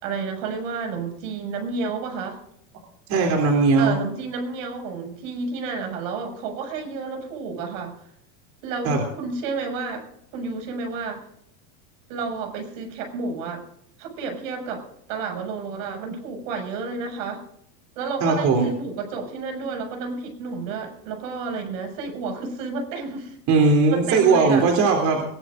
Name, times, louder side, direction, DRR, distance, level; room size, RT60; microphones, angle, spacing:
voice 1, 0.0-2.4 3.8-7.9 8.6-10.1 10.3-11.3 12.1-13.6 14.0-17.4 17.9-23.4 23.6-24.7, right 4 dB, 65° right, 4 dB, 6.4 m, -31 dB
voice 2, 3.1-4.0 8.8-9.0 18.2-18.7 23.5-25.2, right 4 dB, 40° right, 2 dB, 3.3 m, -18 dB
22.0 x 18.5 x 2.6 m, 0.73 s
supercardioid pair, 140°, 42 cm